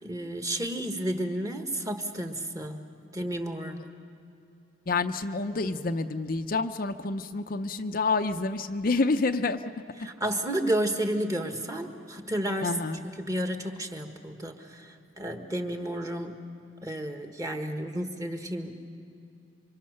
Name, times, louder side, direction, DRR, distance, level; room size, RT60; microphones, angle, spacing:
voice 1, 0.0-2.8 3.1-3.8 10.0-12.8 13.2-16.4 16.8-18.8, right 1 dB, 15° right, 5 dB, 1.3 m, -31 dB
voice 2, 4.9-9.6 12.6-13.0, left 3 dB, 45° left, 7 dB, 0.6 m, -28 dB
27.0 x 25.0 x 6.6 m, 2.6 s
head